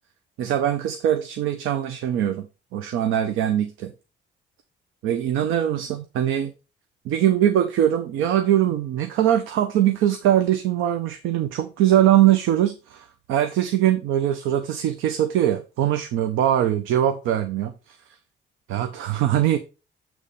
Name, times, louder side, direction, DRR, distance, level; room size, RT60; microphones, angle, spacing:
voice 1, 0.4-2.5 2.7-3.9 5.0-6.5 7.0-18.0 18.7-19.6, right 11 dB, 90° right, 0.6 m, -22 dB
8.3 x 3.1 x 5.3 m
cardioid pair, 90°, 20 cm